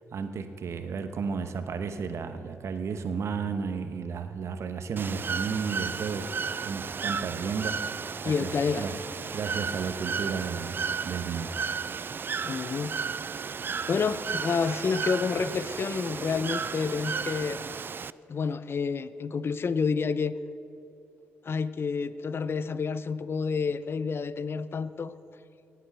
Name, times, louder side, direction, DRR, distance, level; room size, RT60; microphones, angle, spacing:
voice 1, 0.1-6.3 6.6-8.5 8.8-9.0 9.3-11.5, right 5 dB, 70° right, 8 dB, 1.0 m, -33 dB
Bird / Water, 5.0-18.1, right 5 dB, 45° right, 0.3 m, -34 dB
voice 2, 8.2-8.9 12.4-13.0 13.9-17.6 18.3-20.3 21.4-25.1, left 5 dB, 50° left, 15 dB, 0.6 m, -29 dB
19.0 x 8.2 x 6.1 m, 2.8 s
supercardioid pair, 50°, 5 cm